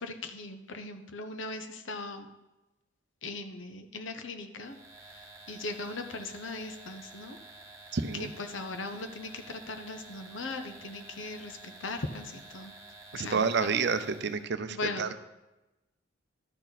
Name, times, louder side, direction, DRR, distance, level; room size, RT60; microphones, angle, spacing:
voice 1, 0.0-2.3 3.2-4.8 5.1-7.4 8.2-12.8 13.1-13.7 14.7-15.2, left 3 dB, 70° left, 7 dB, 0.9 m, -39 dB
sound 1, 4.6-14.5, right 2 dB, 15° right, 1.3 m, -51 dB
voice 2, 7.9-8.3 13.1-15.2, right 5 dB, 55° right, 11 dB, 0.5 m, -29 dB
12.0 x 6.6 x 4.0 m, 1.0 s
head